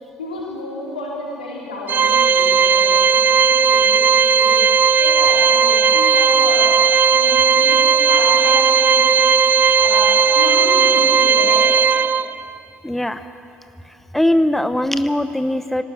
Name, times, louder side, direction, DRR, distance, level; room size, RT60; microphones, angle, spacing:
voice 1, 0.2-6.7 7.1-9.4 9.7-11.6, left 2 dB, 90° left, -4 dB, 4.3 m, -30 dB
Organ, 1.9-12.5, right 6 dB, 40° right, 0.5 m, -15 dB
voice 2, 12.8-13.2 14.1-15.8, left 1 dB, 5° left, 10 dB, 0.9 m, -20 dB
19.0 x 18.5 x 8.2 m, 2.7 s
hypercardioid pair, 50°, 5 cm